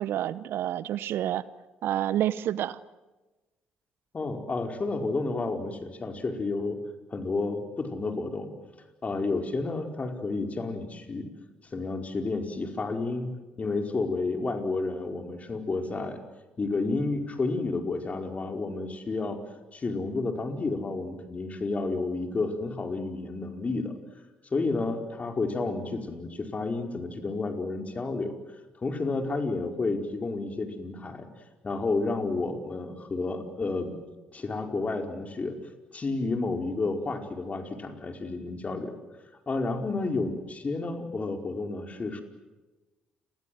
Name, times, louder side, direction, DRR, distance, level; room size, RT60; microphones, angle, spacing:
voice 1, 0.0-1.4 1.8-2.8, right 12 dB, 65° right, 18 dB, 0.9 m, -28 dB
voice 2, 4.1-6.8 7.1-8.5 9.0-11.3 11.7-13.3 13.6-16.2 16.6-19.4 19.7-23.9 24.5-28.3 28.7-31.3 31.6-34.0 34.3-35.6 35.9-39.0 39.5-42.2, left 3 dB, 35° left, 5 dB, 4.9 m, -31 dB
30.0 x 23.0 x 7.9 m, 1.1 s
hypercardioid pair, 50°, 4 cm